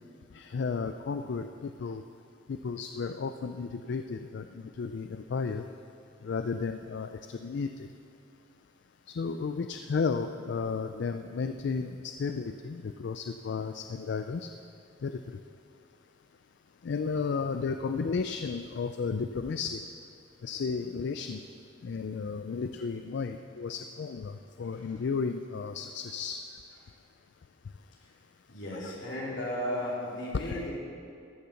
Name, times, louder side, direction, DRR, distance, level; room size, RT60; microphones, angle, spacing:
voice 1, 0.3-2.0 2.5-4.5 4.8-5.6 6.2-7.9 9.2-14.5 15.0-15.2 16.8-19.8 20.4-21.4 21.8-26.4, left 5 dB, 65° left, 8 dB, 0.4 m, -33 dB
voice 2, 24.6-24.9 28.0-28.1 28.5-30.7, left 1 dB, 85° left, -6 dB, 3.3 m, -35 dB
14.0 x 6.8 x 5.8 m, 2.5 s
head